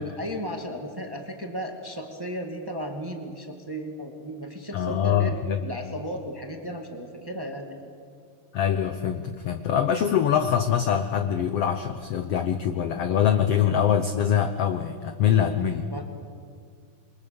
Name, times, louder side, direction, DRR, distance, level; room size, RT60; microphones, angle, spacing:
voice 1, 0.0-5.3 5.6-7.7 15.9-16.0, equal, 10° right, 3 dB, 1.6 m, -35 dB
voice 2, 4.7-5.7 8.5-15.9, left 9 dB, 75° left, 8 dB, 1.4 m, -24 dB
28.0 x 23.5 x 7.1 m, 2.2 s
omnidirectional pair, 4.0 m